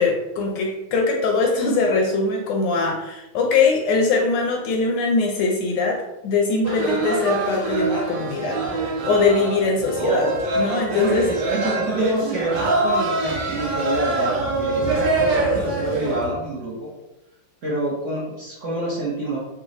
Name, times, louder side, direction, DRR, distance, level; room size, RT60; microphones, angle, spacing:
voice 1, 0.0-8.6 9.1-10.3 10.6-11.3, left 4 dB, 75° left, 1 dB, 1.1 m, -21 dB
sound 1, 6.6-16.3, right 3 dB, 65° right, 1.3 m, -24 dB
voice 2, 10.9-16.9 17.6-19.4, right 1 dB, 50° right, -6 dB, 1.0 m, -27 dB
4.0 x 2.3 x 3.8 m, 0.95 s
omnidirectional pair, 2.2 m